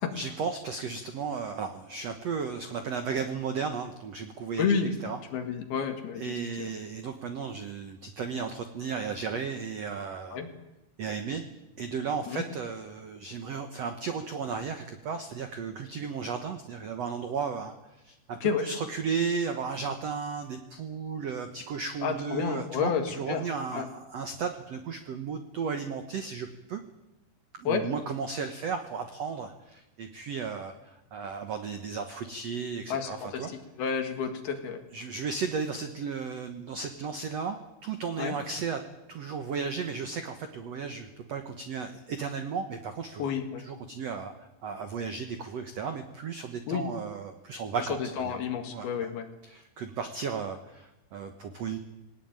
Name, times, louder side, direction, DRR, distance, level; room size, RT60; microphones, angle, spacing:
voice 1, 0.1-4.7 5.0-5.2 6.2-10.4 11.0-11.4 11.8-17.8 18.0-26.8 27.6-33.5 34.9-38.8 39.1-43.2 43.6-48.4 48.7-49.1 49.4-51.8, right 5 dB, 75° right, 7 dB, 1.5 m, -34 dB
voice 2, 4.6-4.9 5.3-6.7 10.3-10.5 12.3-12.4 18.4-18.7 22.0-23.4 23.7-23.9 27.7-27.9 32.9-34.8 38.2-38.4 43.2-43.6 46.7-46.9 47.8-49.3, left 6 dB, 65° left, 6 dB, 3.8 m, -30 dB
20.5 x 18.5 x 9.1 m, 0.97 s
omnidirectional pair, 4.9 m